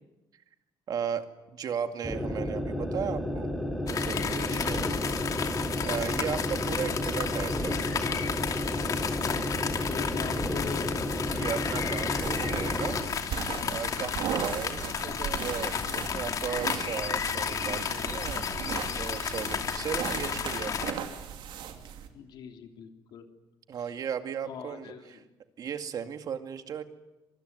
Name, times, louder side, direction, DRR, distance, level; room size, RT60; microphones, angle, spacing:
voice 1, 0.9-3.5 3.8-4.8 5.4-7.8 11.3-13.0 13.7-18.5 19.0-21.0 23.7-25.2 25.6-26.8, right 7 dB, 50° right, 7 dB, 2.3 m, -36 dB
sound 1, 2.0-13.1, left 1 dB, ahead, 4.4 m, -32 dB
sound 2, 3.9-20.9, left 7 dB, 45° left, 2.8 m, -32 dB
voice 2, 4.3-4.9 9.2-11.3 22.1-23.2 23.8-23.9 24.4-25.2, left 7 dB, 65° left, 4 dB, 3.3 m, -42 dB
sound 3, 12.2-22.1, right 8 dB, 75° right, 2.8 m, -38 dB
25.5 x 20.5 x 9.6 m, 1.0 s
cardioid pair, 125°, 8 cm